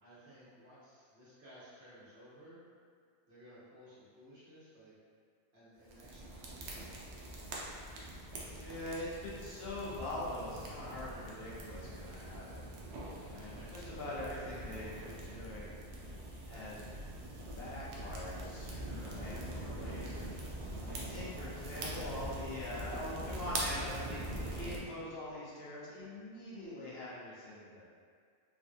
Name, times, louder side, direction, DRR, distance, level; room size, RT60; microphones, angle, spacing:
voice 1, 0.0-2.6 3.3-4.9 5.5-7.4 9.3-9.7 13.5-13.8 21.3-22.1 22.6-23.2, right 1 dB, 70° right, -11 dB, 1.3 m, -57 dB
sound 1, 5.9-24.8, right 1 dB, 90° right, 0.9 m, -43 dB
voice 2, 8.5-12.7 13.0-15.8 16.5-16.8 17.6-20.3 20.8-27.8, left 1 dB, 70° left, -8 dB, 1.0 m, -43 dB
3.4 x 2.3 x 2.6 m, 2.1 s
omnidirectional pair, 1.1 m